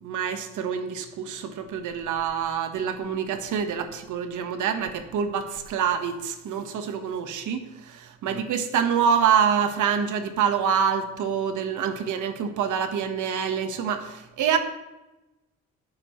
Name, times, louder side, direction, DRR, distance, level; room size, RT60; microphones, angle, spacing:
voice 1, 0.0-14.6, right 7 dB, 80° right, 7 dB, 1.4 m, -26 dB
18.5 x 7.0 x 3.2 m, 1.0 s
cardioid pair, 90°, 30 cm